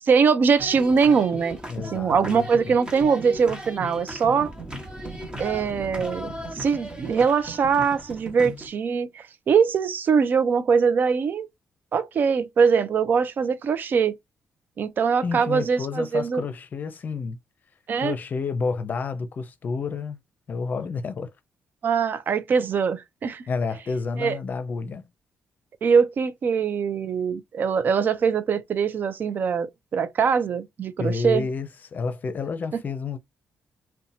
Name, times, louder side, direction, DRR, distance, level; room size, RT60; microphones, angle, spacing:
voice 1, 0.1-1.6 1.9-4.5 5.4-11.5 11.9-14.2 14.8-16.4 17.9-18.1 21.8-23.4 24.2-24.4 25.8-31.4, right 6 dB, 55° right, 0.4 m, -22 dB
sound 1, 0.6-8.7, right 1 dB, 20° right, 1.1 m, -37 dB
voice 2, 1.7-2.7 15.2-17.4 17.9-20.2 20.5-21.3 23.5-25.1 31.0-33.2, left 4 dB, 45° left, 0.6 m, -30 dB
2.8 x 2.2 x 2.6 m
cardioid pair, 95°, 4 cm